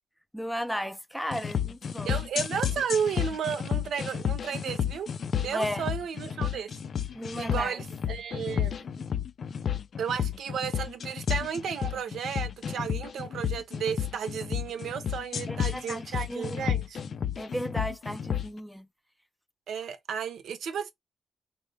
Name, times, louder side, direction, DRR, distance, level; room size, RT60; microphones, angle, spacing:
voice 1, 0.3-2.1 5.5-5.9 7.1-7.8 15.5-16.6 17.4-18.9, equal, ahead, 0.4 m, -35 dB
sound 1, 1.3-18.5, left 8 dB, 60° left, 0.4 m, -31 dB
voice 2, 2.0-5.1 5.4-6.7 7.4-8.8 10.0-17.0 19.7-20.9, right 7 dB, 85° right, 0.7 m, -33 dB
3.7 x 2.0 x 3.3 m
cardioid pair, 100°, 0 cm